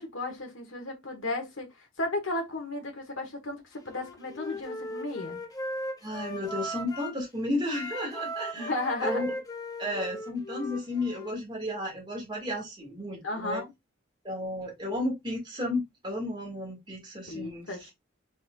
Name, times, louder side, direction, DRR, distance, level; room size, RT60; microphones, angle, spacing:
voice 1, 0.0-5.4 8.5-9.3 13.2-13.7 17.3-17.9, left 2 dB, 80° left, 1.6 m, -34 dB
Wind instrument woodwind instrument, 3.8-7.2 7.7-11.3, left 1 dB, 20° left, 0.7 m, -37 dB
voice 2, 6.0-8.7 9.0-9.3 9.8-13.6 14.2-17.9, left 1 dB, 25° right, 1.8 m, -33 dB
4.5 x 4.2 x 2.3 m
head